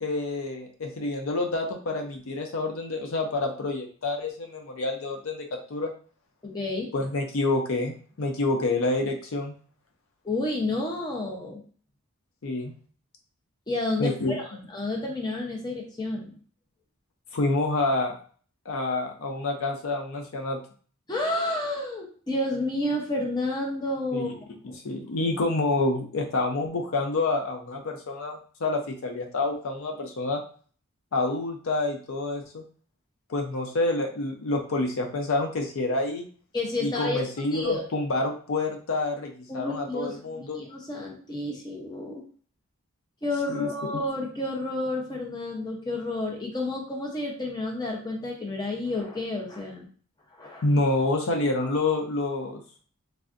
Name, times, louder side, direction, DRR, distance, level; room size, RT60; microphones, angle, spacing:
voice 1, 0.0-5.9 6.9-9.5 12.4-12.7 14.0-14.6 17.3-18.1 18.7-20.6 24.1-24.3 24.8-30.4 31.1-32.6 33.3-36.3 36.8-40.6 43.5-44.0 50.6-52.6, left 2 dB, 65° left, 3 dB, 0.5 m, -28 dB
voice 2, 6.4-6.9 10.2-11.6 13.7-14.4 14.7-16.3 21.1-24.4 36.5-37.2 37.5-37.8 39.5-42.2 43.2-49.9 50.3-50.6, left 2 dB, 20° left, 0 dB, 0.6 m, -30 dB
3.3 x 2.5 x 2.4 m, 0.43 s
head